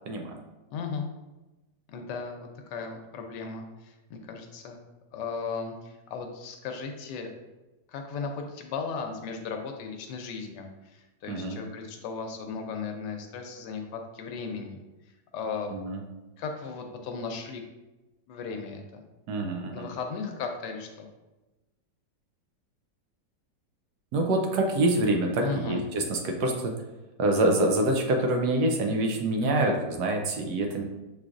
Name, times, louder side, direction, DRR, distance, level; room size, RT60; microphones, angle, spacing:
voice 1, 0.1-0.4 11.3-11.6 15.7-16.0 19.3-19.9 24.1-26.7 27.2-30.8, right 1 dB, 75° right, 3 dB, 1.1 m, -26 dB
voice 2, 0.7-1.1 1.9-4.8 5.1-7.3 7.9-14.8 15.3-15.7 16.4-17.6 18.3-19.0 19.7-21.1 25.4-25.8 29.4-29.8, left 5 dB, 80° left, 4 dB, 1.2 m, -36 dB
5.9 x 3.2 x 2.5 m, 1.1 s
omnidirectional pair, 1.9 m